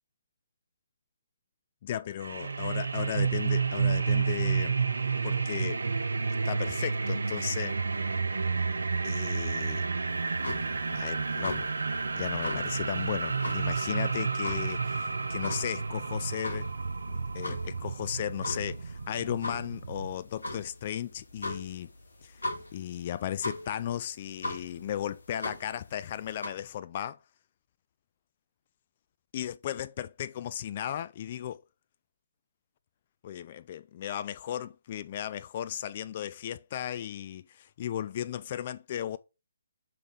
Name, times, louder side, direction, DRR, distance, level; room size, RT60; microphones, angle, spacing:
voice 1, 1.8-4.7 5.2-5.8 6.4-7.8 9.0-9.9 10.9-11.7 12.1-16.7 17.1-21.9 22.2-22.4 22.7-27.2 29.3-31.6 33.2-39.2, left 10 dB, 40° left, 0.4 m, -35 dB
sound 1, 2.2-20.1, right 4 dB, 70° right, 0.7 m, -31 dB
sound 2, 10.1-26.5, left 2 dB, 75° left, 2.1 m, -40 dB
6.8 x 3.6 x 4.0 m
figure-of-eight pair, 140°, 0 cm